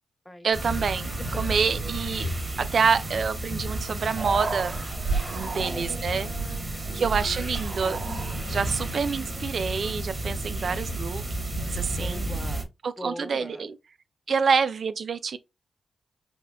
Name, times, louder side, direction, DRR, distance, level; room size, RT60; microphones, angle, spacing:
voice 1, 0.4-2.3 2.6-4.7 5.3-6.3 6.9-8.0 8.5-11.2 11.7-12.3 12.8-13.7 14.3-15.4, right 5 dB, 70° right, 0.4 m, -27 dB
sound 1, 0.5-12.6, right 1 dB, 30° right, 1.5 m, -32 dB
Human voice, 4.1-6.1 7.0-8.7, right 4 dB, 50° right, 2.0 m, -33 dB
voice 2, 5.5-8.5 12.0-12.7 13.0-13.7, left 1 dB, 15° left, 0.9 m, -42 dB
5.2 x 2.2 x 2.3 m
cardioid pair, 65°, 0 cm